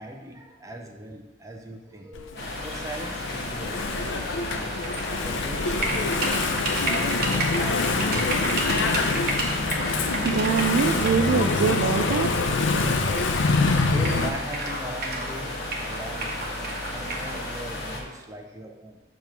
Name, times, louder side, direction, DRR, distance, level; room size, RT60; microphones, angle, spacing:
voice 1, 0.0-4.0 4.3-9.2 13.6-15.6 15.8-19.0, right 1 dB, 15° right, 2 dB, 0.6 m, -40 dB
Engine / Mechanisms, 2.1-14.3, left 3 dB, 85° left, 0.5 m, -26 dB
sound 1, 2.3-18.0, left 1 dB, 55° left, 1.1 m, -34 dB
sound 2, 4.8-5.1 5.8-11.3 12.1-12.2 13.2-13.3 13.5-13.6 14.0-15.3 15.7-17.3, right 2 dB, 50° right, 1.0 m, -31 dB
voice 2, 9.9-12.5, right 6 dB, 75° right, 5 dB, 0.3 m, -24 dB
6.9 x 3.0 x 5.8 m, 1.2 s
head